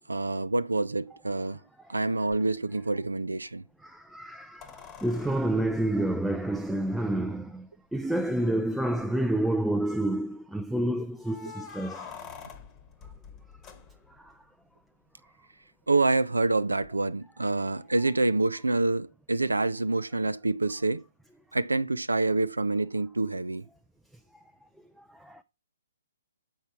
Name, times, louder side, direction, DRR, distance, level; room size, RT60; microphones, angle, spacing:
voice 1, 0.1-1.6 1.9-3.6 15.9-21.0 21.5-23.6, right 2 dB, 90° right, 0.4 m, -27 dB
sound 1, 2.3-2.4 4.6-7.0 8.0-8.1 8.3-8.4 9.0-9.5 11.2-14.3 16.8-16.9, left 6 dB, 25° left, 1.1 m, -47 dB
voice 2, 3.8-4.7 5.0-7.7 7.9-12.0 25.3-25.4, right 1 dB, ahead, 0.4 m, -28 dB
7.0 x 5.6 x 4.4 m
figure-of-eight pair, 130°, 0 cm